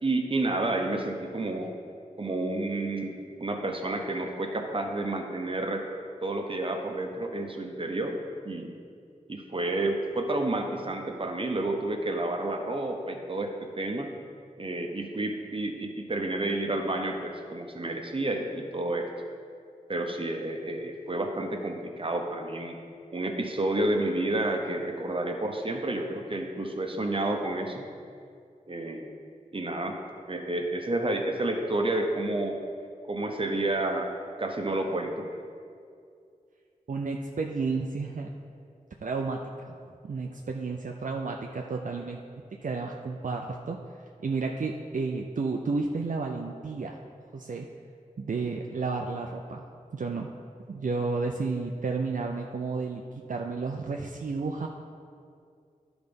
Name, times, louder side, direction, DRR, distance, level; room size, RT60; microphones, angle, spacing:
voice 1, 0.0-1.7 2.2-3.1 3.4-5.8 6.2-8.2 8.4-8.8 9.3-14.1 14.6-19.1 19.9-22.8 23.1-27.9 28.7-29.1 29.5-30.0 30.3-32.6 33.1-34.1 34.4-35.3, right 2 dB, 40° right, 3 dB, 0.9 m, -30 dB
voice 2, 36.9-38.3 39.0-39.7 40.0-42.2 42.6-43.8 44.2-47.0 47.3-47.7 48.2-49.6 49.9-50.3 50.7-53.0 53.3-54.7, right 4 dB, 65° right, 1 dB, 0.5 m, -31 dB
11.5 x 4.0 x 5.2 m, 2.3 s
wide cardioid pair, 70°, 14 cm